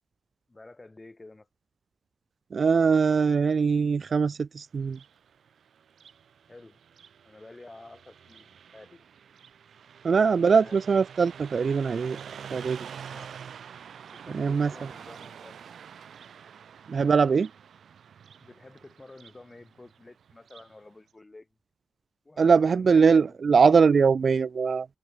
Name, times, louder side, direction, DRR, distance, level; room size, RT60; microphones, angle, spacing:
voice 1, 0.5-1.5 6.5-6.8 7.2-9.1 10.4-10.9 13.0-13.4 14.1-15.5 18.4-21.5 22.2-23.0 23.3-23.4, left 2 dB, 20° left, 7.7 m, -50 dB
voice 2, 2.5-5.0 10.0-12.2 12.5-12.9 14.3-14.7 16.9-17.5 22.4-24.9, right 5 dB, 55° right, 0.4 m, -22 dB
Car passing by, 4.8-20.8, right 7 dB, 80° right, 7.0 m, -47 dB
wide cardioid pair, 100°, 0 cm